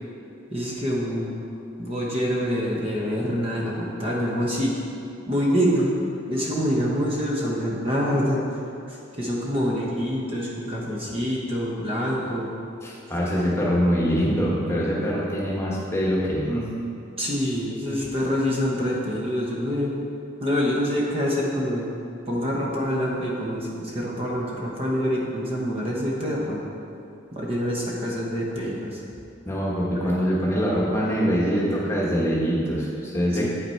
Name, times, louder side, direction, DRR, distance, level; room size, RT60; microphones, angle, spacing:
voice 1, 0.5-1.4 1.8-4.8 5.3-6.0 6.3-8.6 8.9-12.5 17.2-19.9 20.4-21.8 22.3-26.6 27.3-29.0 30.0-30.1 33.4-33.5, equal, 30° right, -3 dB, 0.9 m, -26 dB
voice 2, 12.8-16.7 29.4-33.5, equal, 15° left, -5 dB, 1.1 m, -24 dB
8.2 x 5.8 x 4.4 m, 2.6 s
head